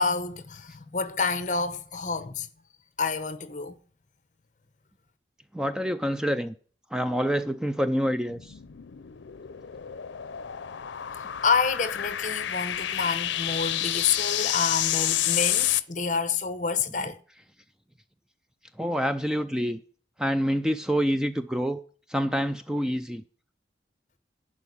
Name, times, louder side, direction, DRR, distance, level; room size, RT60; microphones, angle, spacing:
voice 1, 0.0-2.5 3.0-3.8 11.2-17.2, left 5 dB, 45° left, 0.9 m, -28 dB
voice 2, 5.5-6.5 6.9-8.6 16.9-17.4 18.8-19.8 20.2-21.8 22.1-23.2, equal, 5° right, 0.4 m, -27 dB
sound 1, 8.3-15.8, left 12 dB, 90° left, 0.6 m, -29 dB
11.0 x 5.0 x 8.3 m
head